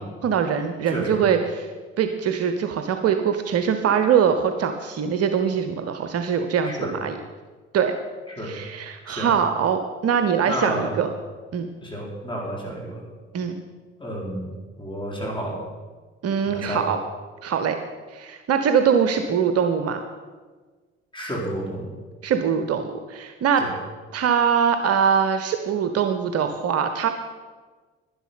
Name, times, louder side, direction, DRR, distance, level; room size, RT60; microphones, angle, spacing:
voice 1, 0.0-1.7 2.0-7.2 7.7-7.9 8.4-11.1 11.5-11.7 13.3-13.6 16.2-17.0 17.4-17.8 18.1-20.0 22.2-23.6 24.1-27.1, right 7 dB, 45° right, 7 dB, 0.9 m, -22 dB
voice 2, 0.9-1.2 6.6-6.9 8.3-8.5 9.1-9.3 10.4-11.0 11.8-13.0 14.0-14.5 14.8-15.6 16.5-16.9 21.1-21.9 23.6-23.7, equal, 15° left, -2 dB, 4.3 m, -31 dB
11.5 x 10.5 x 5.7 m, 1.4 s
figure-of-eight pair, 45°, 35 cm